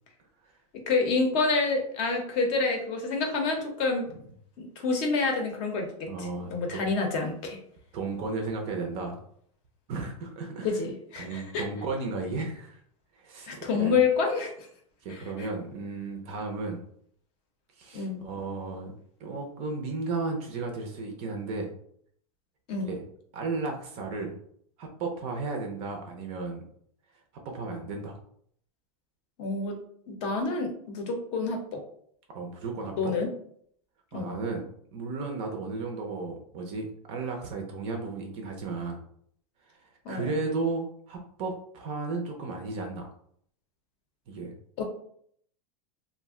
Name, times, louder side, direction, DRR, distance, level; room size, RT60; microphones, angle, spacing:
voice 1, 0.9-4.1 4.6-7.6 10.6-11.6 13.5-14.5 15.1-15.5 17.9-18.2 22.7-22.9 29.4-29.7 30.1-31.8 33.0-33.3 34.1-34.3 40.0-40.3 44.8-44.9, left 4 dB, 35° left, 3 dB, 0.6 m, -28 dB
voice 2, 6.1-6.9 7.9-9.2 9.9-10.8 11.2-12.8 13.2-14.0 15.0-16.8 17.8-18.9 19.2-21.7 22.8-23.0 23.3-24.4 24.8-26.6 27.4-28.1 32.3-33.1 34.1-34.6 34.9-39.0 40.1-43.1 44.3-44.5, right 3 dB, 30° right, 2 dB, 0.5 m, -34 dB
2.4 x 2.1 x 3.5 m, 0.65 s
supercardioid pair, 155°, 20 cm